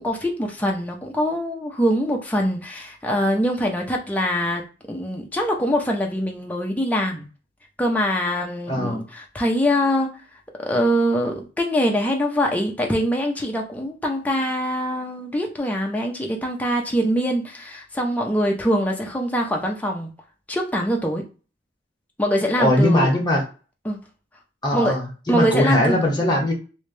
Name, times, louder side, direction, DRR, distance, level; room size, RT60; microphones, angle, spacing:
voice 1, 0.0-4.6 4.9-7.2 7.8-10.2 10.6-20.1 20.5-21.2 22.2-23.1 23.8-24.0 24.7-25.0 25.3-26.0, equal, 10° left, 0.7 m, -23 dB
voice 2, 8.7-9.1 22.6-23.4 24.6-26.5, left 1 dB, 25° left, 1.1 m, -20 dB
3.2 x 2.7 x 3.2 m
head